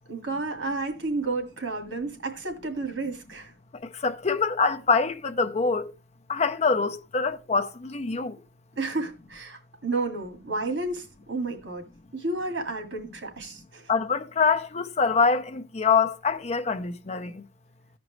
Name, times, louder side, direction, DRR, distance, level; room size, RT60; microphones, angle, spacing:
voice 1, 0.1-3.5 8.8-11.8 12.1-13.9, right 3 dB, 75° right, 2.0 m, -31 dB
voice 2, 4.0-5.9 6.3-8.4 13.9-17.4, left 5 dB, 35° left, 0.6 m, -25 dB
15.0 x 5.1 x 3.1 m
head